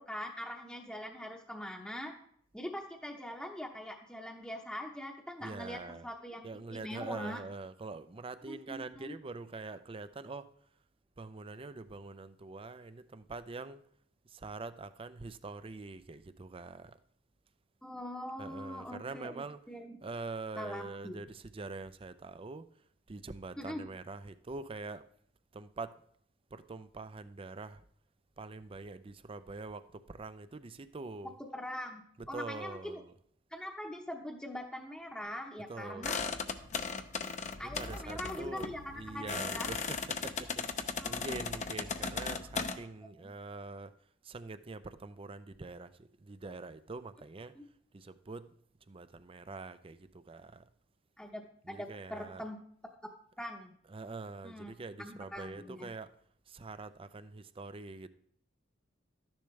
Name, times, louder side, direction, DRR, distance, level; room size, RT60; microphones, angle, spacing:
voice 1, 0.0-2.2 2.5-7.4 8.5-9.1 17.8-20.0 20.6-21.2 23.6-23.8 31.5-33.0 33.5-36.2 37.6-39.7 41.0-41.3 43.2-43.3 47.5-47.6 51.2-52.6 53.4-53.7 54.4-54.7 55.0-55.9, left 1 dB, 5° left, 0.9 m, -42 dB
voice 2, 5.4-6.1 6.4-10.5 11.2-13.8 14.3-17.0 18.4-19.6 20.0-22.7 23.1-25.1 25.5-26.0 26.5-27.8 28.4-31.4 32.2-33.1 35.6-36.2 37.6-43.9 44.2-47.5 47.9-48.5 48.9-50.6 51.6-52.4 53.8-56.1 56.5-58.1, right 3 dB, 30° right, 0.5 m, -44 dB
sound 1, 36.0-42.8, left 5 dB, 40° left, 0.7 m, -37 dB
13.0 x 10.5 x 3.3 m
head